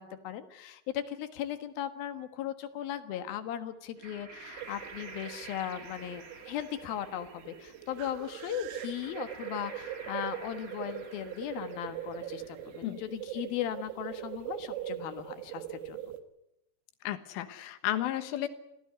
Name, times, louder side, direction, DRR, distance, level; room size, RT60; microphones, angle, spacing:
voice 1, 0.0-16.0, left 11 dB, 65° left, 9 dB, 2.8 m, -37 dB
sound 1, 3.9-12.9, right 4 dB, 65° right, 0.8 m, -50 dB
sound 2, 4.6-16.2, right 11 dB, 85° right, 4.0 m, -42 dB
voice 2, 17.1-18.5, left 13 dB, 90° left, 10 dB, 3.9 m, -33 dB
27.0 x 16.5 x 9.6 m, 0.87 s
omnidirectional pair, 5.5 m